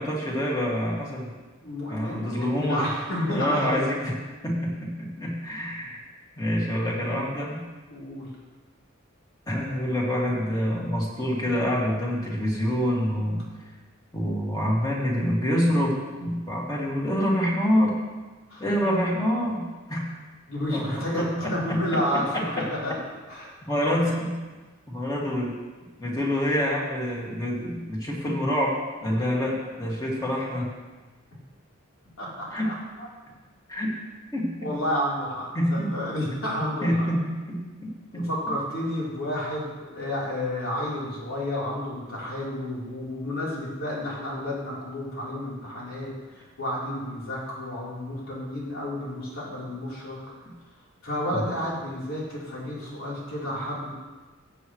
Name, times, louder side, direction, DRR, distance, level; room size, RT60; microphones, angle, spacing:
voice 1, 0.0-1.3 1.9-2.9 3.3-4.2 4.4-6.0 6.4-7.6 9.5-13.4 14.1-18.0 18.6-19.6 19.9-20.0 20.7-20.8 21.1-22.0 22.3-22.4 23.7-24.3 24.9-25.5 26.0-30.7 32.5-32.7 33.7-33.9 34.3-34.7 35.5-35.9 36.8-38.2 51.3-51.4, equal, 20° left, -4 dB, 2.2 m, -26 dB
voice 2, 1.6-3.9 7.9-8.3 18.5-18.6 20.5-22.9 23.3-23.5 32.2-33.1 34.6-37.1 38.1-50.2 51.0-53.9, left 1 dB, 80° left, -6 dB, 3.7 m, -31 dB
15.5 x 7.9 x 3.2 m, 1.3 s
head